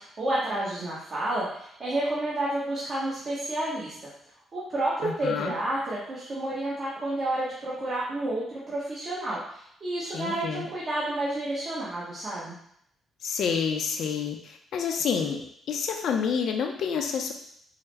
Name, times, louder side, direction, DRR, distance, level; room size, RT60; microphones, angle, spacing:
voice 1, 0.0-4.0 4.5-9.4 9.8-12.6, right 1 dB, 40° right, -7 dB, 1.0 m, -30 dB
voice 2, 5.0-5.5 10.1-10.6 13.2-17.3, left 6 dB, 70° left, 3 dB, 0.5 m, -29 dB
4.6 x 2.0 x 3.3 m, 0.70 s
cardioid pair, 105°, 0 cm